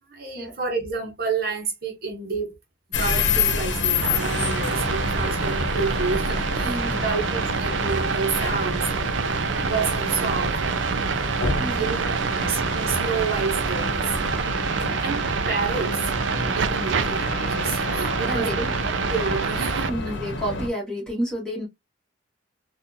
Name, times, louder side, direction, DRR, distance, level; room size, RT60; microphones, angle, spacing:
voice 1, 0.1-2.6 3.0-10.6 11.7-14.3 14.8-16.0 16.3-19.9, right 4 dB, 50° right, 1.0 m, -30 dB
sound 1, 2.9-20.7, left 3 dB, 65° left, 0.9 m, -28 dB
sound 2, 4.0-19.9, right 6 dB, 70° right, 0.4 m, -27 dB
voice 2, 6.6-7.0 11.6-11.9 18.2-18.8 19.9-21.7, equal, 5° left, 1.7 m, -30 dB
4.1 x 2.5 x 2.6 m
head